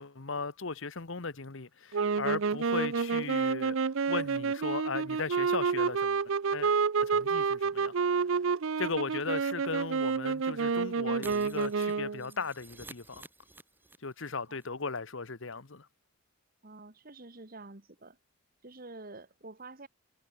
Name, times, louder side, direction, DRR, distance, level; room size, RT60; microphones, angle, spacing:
voice 1, 0.0-3.8 4.1-6.2 6.5-7.9 8.8-13.3 14.0-15.9, left 4 dB, 55° left, 1.1 m, -37 dB
sound 1, 1.9-12.3, right 5 dB, 60° right, 0.5 m, -29 dB
Shatter, 11.2-14.3 14.6-14.7 15.0-15.1, right 2 dB, 10° right, 4.9 m, -51 dB
voice 2, 16.6-18.2 18.6-19.9, right 2 dB, 40° right, 1.7 m, -48 dB
head